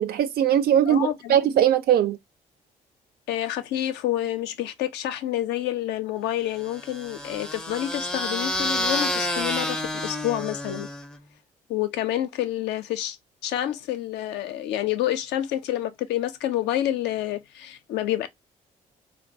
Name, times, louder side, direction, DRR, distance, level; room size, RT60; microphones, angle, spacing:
voice 1, 0.0-2.2, right 10 dB, 55° right, 0.4 m, -20 dB
voice 2, 0.9-1.4 3.3-10.9 11.7-13.2 13.4-18.3, left 12 dB, 70° left, 0.4 m, -28 dB
sound 1, 6.6-11.2, left 1 dB, 5° left, 0.4 m, -29 dB
2.2 x 2.2 x 2.6 m
hypercardioid pair, 50°, 18 cm